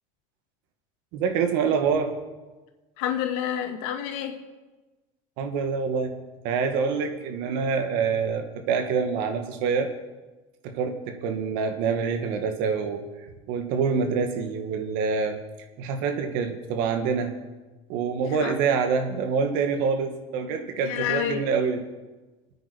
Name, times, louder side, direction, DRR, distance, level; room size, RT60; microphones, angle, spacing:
voice 1, 1.1-2.1 5.4-9.9 10.6-13.1 13.5-15.4 15.8-17.4 17.9-21.9, right 5 dB, 75° right, 6 dB, 2.1 m, -26 dB
voice 2, 3.0-4.4 18.4-18.5 20.8-21.4, left 10 dB, 80° left, 5 dB, 2.1 m, -28 dB
26.5 x 9.4 x 5.4 m, 1.2 s
supercardioid pair, 105°, 15 cm